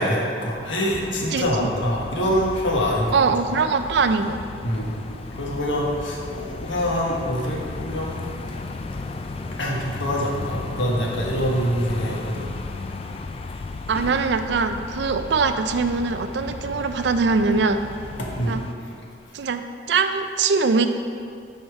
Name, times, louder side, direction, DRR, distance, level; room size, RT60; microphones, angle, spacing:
voice 1, 0.0-3.2 4.6-5.0 5.3-8.2 9.6-12.5 18.2-18.5 18.9-19.0, equal, 85° left, -2 dB, 1.4 m, -25 dB
sound 1, 0.9-18.7, left 3 dB, 30° left, 0.3 m, -35 dB
voice 2, 1.3-1.7 3.1-4.4 13.9-17.8 18.5-18.6 19.3-20.9, right 4 dB, 65° right, 9 dB, 0.4 m, -22 dB
9.5 x 4.3 x 4.7 m, 2.4 s
head